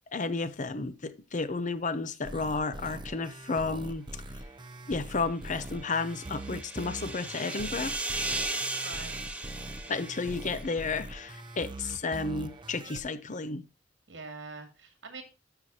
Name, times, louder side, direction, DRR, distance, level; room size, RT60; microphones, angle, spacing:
voice 1, 0.1-4.1 4.9-8.0 9.9-13.6, left 4 dB, 45° left, 0.7 m, -32 dB
sound 1, 2.2-13.0, right 2 dB, 25° right, 0.6 m, -42 dB
sound 2, 5.5-11.1, right 2 dB, 5° right, 1.2 m, -37 dB
voice 2, 8.8-9.5 14.1-15.2, right 4 dB, 75° right, 2.5 m, -44 dB
12.5 x 5.9 x 2.8 m
head